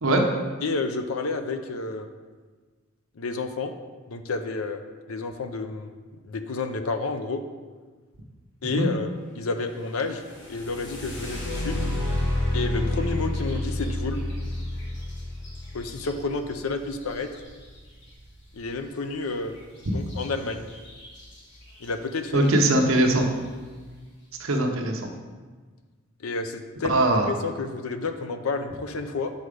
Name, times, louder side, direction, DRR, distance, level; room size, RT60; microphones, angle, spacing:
voice 1, 0.6-2.1 3.2-3.7 4.1-4.8 5.1-5.9 6.2-7.4 8.6-10.2 10.5-11.8 12.5-14.2 15.7-17.3 18.5-19.5 19.9-20.7 21.8-22.5 26.2-29.3, left 3 dB, 80° left, 8 dB, 0.6 m, -30 dB
sound 1, 10.2-18.0 20.1-20.2 20.7-21.2 21.8-21.9 22.5-22.8, left 1 dB, 55° left, 1.4 m, -30 dB
voice 2, 22.3-23.3 24.4-25.1 26.9-27.3, right 1 dB, 75° right, 2 dB, 0.9 m, -21 dB
6.3 x 4.9 x 4.9 m, 1.4 s
head